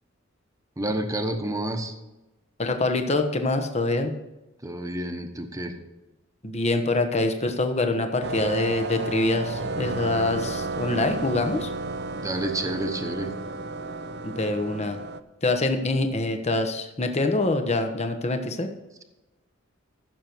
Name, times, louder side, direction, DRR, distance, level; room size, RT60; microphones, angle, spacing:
voice 1, 0.8-1.9 4.6-5.8 12.1-13.3, right 1 dB, 15° right, 5 dB, 1.1 m, -29 dB
voice 2, 2.6-4.1 6.4-11.7 14.2-15.0 15.4-18.7, left 2 dB, 35° left, 6 dB, 1.1 m, -25 dB
sound 1, 8.2-15.2, right 3 dB, 60° right, 0.6 m, -32 dB
15.0 x 6.8 x 4.6 m, 1.0 s
head